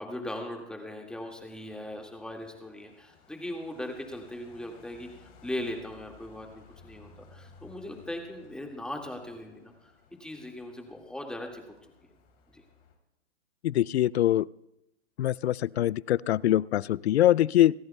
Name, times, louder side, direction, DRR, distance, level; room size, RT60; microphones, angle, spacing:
voice 1, 0.0-5.1 5.4-11.6 12.5-12.6, left 1 dB, ahead, 1 dB, 2.0 m, -39 dB
sound 1, 1.0-12.9, left 5 dB, 30° left, 3.3 m, -57 dB
voice 2, 13.6-14.5 15.2-17.7, left 13 dB, 70° left, 24 dB, 0.5 m, -23 dB
27.5 x 13.5 x 2.3 m, 0.90 s
hypercardioid pair, 130°, 33 cm